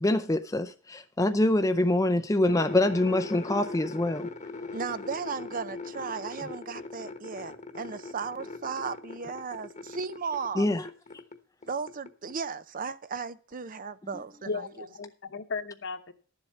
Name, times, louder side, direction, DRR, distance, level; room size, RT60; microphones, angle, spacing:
voice 1, 0.0-4.2 10.6-10.8, left 1 dB, 15° left, 0.5 m, -25 dB
sound 1, 2.5-11.4 11.6-12.3, left 3 dB, 35° left, 1.1 m, -40 dB
voice 2, 4.7-10.7 11.7-14.5, right 5 dB, 40° right, 0.6 m, -35 dB
voice 3, 14.4-16.1, left 4 dB, 60° left, 1.2 m, -35 dB
12.0 x 7.5 x 5.7 m
head